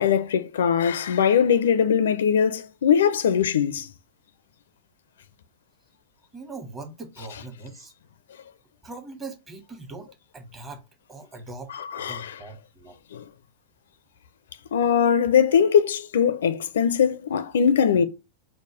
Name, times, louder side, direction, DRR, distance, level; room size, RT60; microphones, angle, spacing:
voice 1, 0.0-3.9 11.9-12.4 13.1-13.2 14.7-18.1, left 7 dB, 65° left, 0.4 m, -21 dB
voice 2, 6.3-7.9 8.8-10.1 10.3-10.8 11.1-13.0, right 3 dB, 20° right, 1.1 m, -41 dB
4.9 x 2.2 x 4.8 m
figure-of-eight pair, 90°, 0 cm